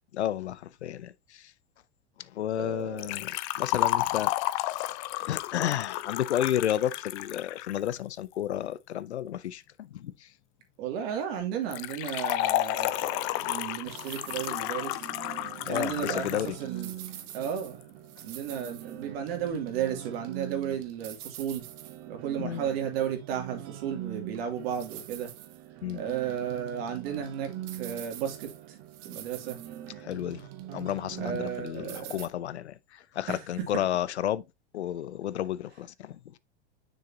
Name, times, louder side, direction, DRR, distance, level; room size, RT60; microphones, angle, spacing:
voice 1, 0.1-1.5 2.3-5.0 5.3-10.3 15.7-16.5 22.4-22.6 25.8-26.0 30.0-34.4 34.7-36.4, left 11 dB, 90° left, 0.7 m, -32 dB
voice 2, 2.5-3.0 10.8-15.0 15.7-16.9 17.3-17.8 18.2-21.6 22.1-25.3 25.9-28.5 29.0-29.6 31.2-32.2 33.3-33.7, right 9 dB, 65° right, 2.8 m, -33 dB
Liquid, 3.0-8.0 11.7-16.5 16.8-16.9 17.8-17.9, left 16 dB, 45° left, 0.7 m, -31 dB
sound 1, 13.8-32.3, right 12 dB, 45° right, 1.3 m, -43 dB
6.8 x 6.5 x 2.8 m
hypercardioid pair, 115°, 33 cm